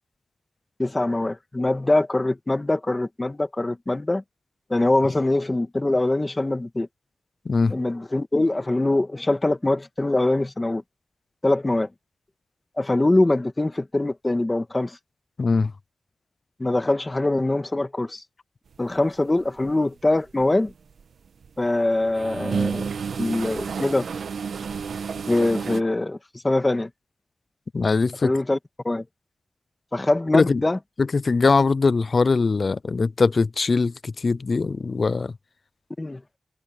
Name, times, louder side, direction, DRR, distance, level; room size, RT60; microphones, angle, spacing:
voice 1, 0.8-4.2 4.7-6.9 7.7-10.8 11.4-11.9 12.8-15.0 16.6-18.2 18.8-20.7 21.6-22.9 23.2-24.1 25.3-26.2 26.4-26.9 28.2-28.6 28.8-29.0 29.9-30.8 36.0-36.2, left 2 dB, 20° left, 1.7 m, -23 dB
voice 2, 7.5-7.8 15.4-15.7 27.7-28.3 30.3-30.6 31.1-35.3, left 4 dB, 45° left, 0.4 m, -21 dB
sound 1, 19.4-19.7 20.2-21.5 21.9-25.8, right 6 dB, 85° right, 1.1 m, -30 dB
wide cardioid pair, 110°, 0 cm